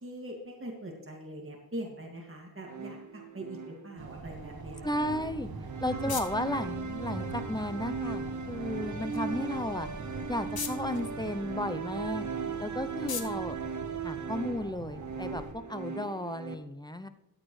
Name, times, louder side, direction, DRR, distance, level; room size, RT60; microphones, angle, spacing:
voice 1, 0.0-4.9 5.8-6.2 12.4-12.6, right 1 dB, 35° right, 0 dB, 2.2 m, -42 dB
sound 1, 2.6-16.6, right 5 dB, 50° right, 0.9 m, -38 dB
sound 2, 4.0-15.5, right 3 dB, 70° right, 1.1 m, -43 dB
voice 2, 4.8-5.5 5.8-9.9 10.3-12.3 12.6-13.6 14.0-17.1, left 1 dB, 10° left, 10 dB, 0.6 m, -34 dB
sound 3, 5.3-14.7, left 6 dB, 70° left, 1.0 m, -46 dB
14.0 x 8.4 x 3.2 m, 0.99 s
wide cardioid pair, 75°, 38 cm